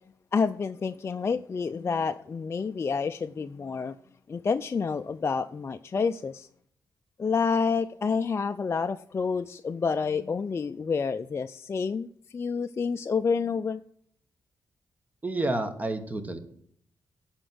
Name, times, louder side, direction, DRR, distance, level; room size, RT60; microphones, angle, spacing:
voice 1, 0.3-4.0 4.3-6.5 7.2-12.1 12.3-13.8, left 5 dB, 35° left, 0.4 m, -28 dB
voice 2, 15.2-16.4, right 2 dB, 20° right, 1.4 m, -29 dB
11.5 x 4.4 x 7.8 m
cardioid pair, 95°, 7 cm